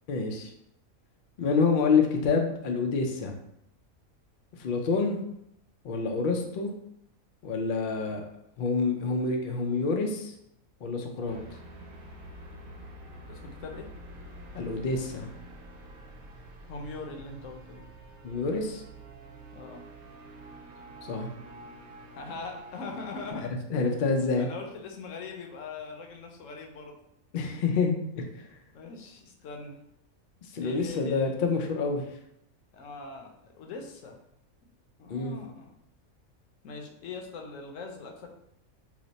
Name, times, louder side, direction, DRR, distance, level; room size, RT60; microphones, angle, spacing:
voice 1, 0.1-0.5 1.4-3.3 4.6-5.2 5.8-6.7 7.4-8.2 8.6-10.3 10.8-11.4 14.5-15.3 18.2-18.8 21.0-21.3 23.7-24.5 27.3-28.5 30.5-32.0 35.1-35.4, left 4 dB, 85° left, 3 dB, 0.4 m, -27 dB
sound 1, 11.3-23.3, right 1 dB, 80° right, 1.0 m, -47 dB
voice 2, 13.3-13.9 16.7-17.8 19.5-19.8 22.1-23.8 24.4-26.9 28.7-29.8 30.6-31.4 32.7-34.2 35.0-35.7 36.6-38.3, left 3 dB, 70° left, 2 dB, 0.9 m, -41 dB
2.9 x 2.0 x 3.9 m, 0.77 s
omnidirectional pair, 1.5 m